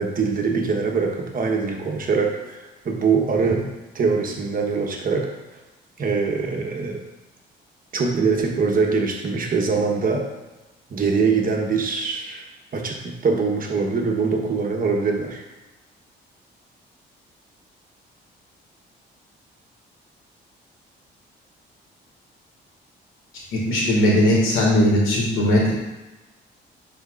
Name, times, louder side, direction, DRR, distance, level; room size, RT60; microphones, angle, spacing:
voice 1, 0.0-3.7 3.9-5.3 6.0-7.0 7.9-10.3 10.9-12.4 12.7-15.4, right 4 dB, 45° right, 2 dB, 1.2 m, -23 dB
voice 2, 23.5-25.7, equal, 90° left, -4 dB, 2.1 m, -18 dB
10.0 x 4.4 x 2.5 m, 1.1 s
cardioid pair, 90°, 20 cm